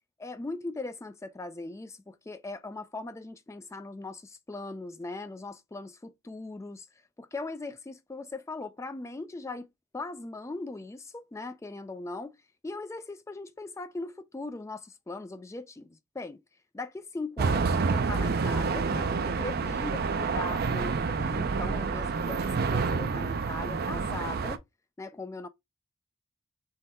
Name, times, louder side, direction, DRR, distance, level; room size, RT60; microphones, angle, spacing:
voice 1, 0.2-6.9 7.2-9.7 9.9-12.4 12.6-16.4 16.7-24.6 25.0-25.5, left 3 dB, 15° left, 0.3 m, -39 dB
sound 1, 17.4-24.6, right 4 dB, 50° right, 0.5 m, -28 dB
3.8 x 3.3 x 4.1 m
head